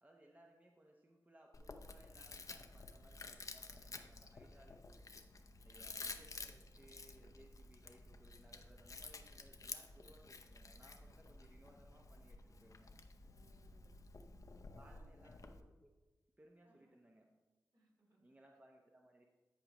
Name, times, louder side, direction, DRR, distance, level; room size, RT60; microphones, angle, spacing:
voice 1, 0.0-5.3 5.6-12.9 14.7-15.9 16.4-17.3 18.2-19.2, right 1 dB, 20° right, 1 dB, 0.9 m, -65 dB
Chewing mastication, 1.5-15.6, left 3 dB, 50° left, 0.7 m, -52 dB
voice 2, 5.6-5.9 13.2-13.9 14.8-15.1 16.6-16.9 17.7-18.3, right 1 dB, 65° right, -3 dB, 2.7 m, -72 dB
13.5 x 5.0 x 3.0 m, 1.2 s
cardioid pair, 55°, 7 cm